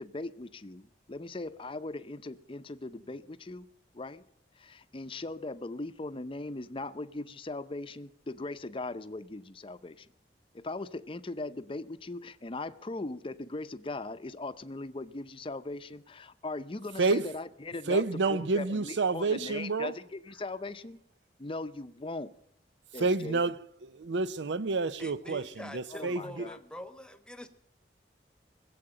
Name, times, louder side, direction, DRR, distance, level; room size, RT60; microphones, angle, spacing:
voice 1, 0.0-3.7 3.9-4.2 4.6-10.1 10.5-18.0 18.3-21.0 21.4-22.3 22.9-23.4 25.9-26.6, left 2 dB, 30° left, 0.6 m, -39 dB
voice 2, 17.0-17.3 17.9-20.0 23.0-23.6 23.8-26.5, right 3 dB, 85° right, 0.6 m, -29 dB
voice 3, 25.0-27.5, equal, 5° left, 1.1 m, -45 dB
20.0 x 7.8 x 8.8 m
head